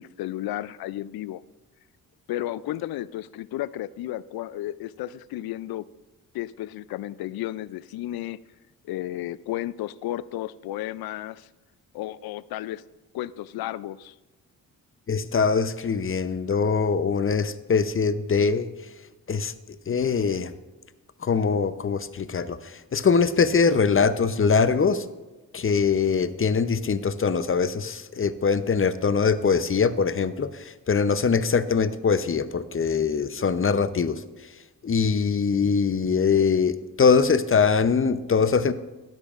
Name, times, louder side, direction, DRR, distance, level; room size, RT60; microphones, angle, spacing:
voice 1, 0.0-1.4 2.3-5.8 6.3-8.4 8.8-11.5 11.9-12.8 13.1-14.1, left 14 dB, 80° left, 18 dB, 0.5 m, -33 dB
voice 2, 15.1-18.7 19.3-19.5 19.9-20.5 21.2-25.1 25.5-34.2 34.8-38.7, left 5 dB, 35° left, 12 dB, 0.7 m, -22 dB
13.0 x 10.5 x 2.5 m, 1.2 s
supercardioid pair, 50°, 36 cm